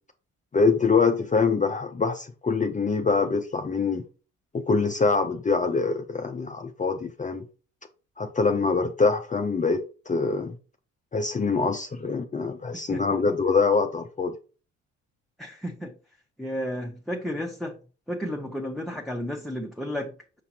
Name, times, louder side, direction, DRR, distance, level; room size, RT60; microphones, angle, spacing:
voice 1, 0.5-4.0 4.5-7.4 8.2-10.6 11.1-14.3, left 4 dB, 25° left, 0.6 m, -24 dB
voice 2, 12.7-13.3 15.4-15.9 16.4-17.8 18.1-20.1, equal, ahead, 0.9 m, -33 dB
6.1 x 5.7 x 2.8 m
cardioid pair, 90°, 30 cm